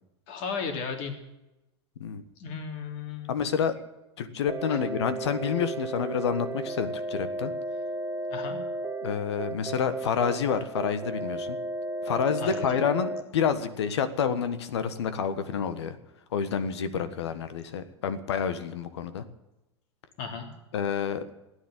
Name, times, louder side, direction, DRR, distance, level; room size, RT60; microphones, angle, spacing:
voice 1, 0.3-1.1 2.4-3.5 4.7-4.8 8.3-8.6 12.4-12.7 20.2-20.5, left 5 dB, 55° left, 4 dB, 3.3 m, -35 dB
voice 2, 3.3-3.7 4.2-7.5 9.0-11.6 12.0-15.9 16.3-19.2 20.7-21.2, left 7 dB, 75° left, 12 dB, 1.4 m, -28 dB
sound 1, 4.5-13.2, right 2 dB, 10° right, 1.2 m, -34 dB
15.0 x 9.7 x 9.2 m, 0.95 s
hypercardioid pair, 95°, 14 cm